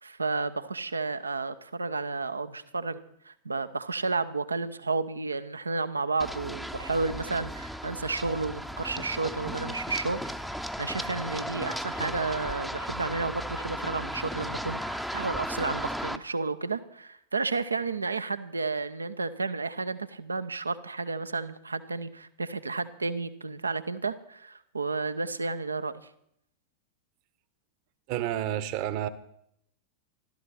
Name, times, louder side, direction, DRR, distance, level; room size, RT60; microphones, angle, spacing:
voice 1, 0.0-26.0, right 3 dB, 80° right, 12 dB, 0.8 m, -32 dB
Run, 6.2-16.2, equal, ahead, 0.8 m, -35 dB
voice 2, 28.1-29.1, right 12 dB, 45° right, 15 dB, 1.0 m, -30 dB
15.0 x 13.0 x 5.8 m, 0.71 s
figure-of-eight pair, 90°, 0 cm